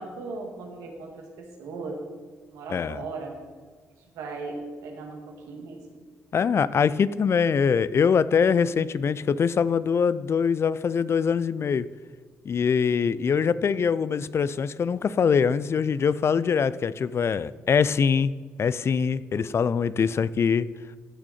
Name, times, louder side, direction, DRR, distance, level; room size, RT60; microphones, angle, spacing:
voice 1, 0.0-2.0 2.5-3.4 4.1-6.0, right 3 dB, 85° right, 1 dB, 1.9 m, -37 dB
voice 2, 2.7-3.0 6.3-11.9 12.5-18.3 18.6-20.7, left 6 dB, 50° left, 17 dB, 0.4 m, -23 dB
15.0 x 6.1 x 4.3 m, 1.5 s
supercardioid pair, 60°, 6 cm